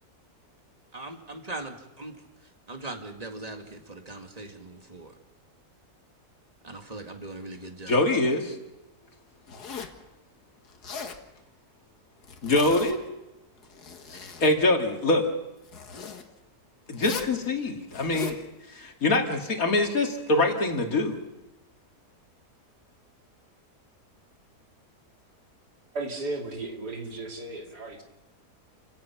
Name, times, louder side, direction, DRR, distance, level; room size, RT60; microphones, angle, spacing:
voice 1, 0.9-2.2 2.7-5.1 6.6-8.2, right 2 dB, 25° right, 4 dB, 2.0 m, -40 dB
voice 2, 7.9-8.6 12.4-13.0 14.1-15.3 16.9-18.4 18.7-21.2, left 2 dB, 60° left, 3 dB, 2.7 m, -24 dB
Zipper (clothing), 9.5-10.0 10.7-11.2 12.2-13.1 13.6-14.6 15.7-16.2 16.9-17.4 17.9-18.4, left 5 dB, 75° left, 2.1 m, -38 dB
voice 3, 25.9-28.0, right 2 dB, 85° right, 1 dB, 3.4 m, -35 dB
29.0 x 17.0 x 5.9 m, 0.99 s
omnidirectional pair, 1.7 m